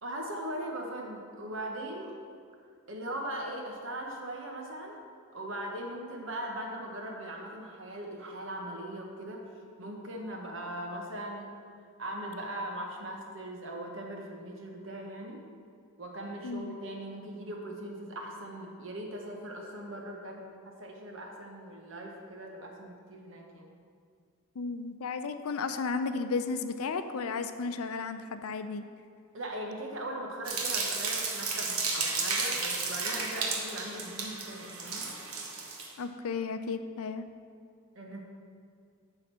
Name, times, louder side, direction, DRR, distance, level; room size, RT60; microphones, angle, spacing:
voice 1, 0.0-2.1 2.9-5.0 5.3-9.4 9.8-11.5 12.0-15.4 16.0-23.7 29.3-35.1 37.9-38.2, right 1 dB, 65° right, 1 dB, 1.2 m, -40 dB
voice 2, 16.4-16.8 24.6-28.8 36.0-37.3, left 4 dB, 85° left, 9 dB, 0.5 m, -34 dB
sound 1, 30.5-35.9, right 4 dB, 80° right, 1.2 m, -33 dB
8.6 x 4.0 x 6.8 m, 2.2 s
head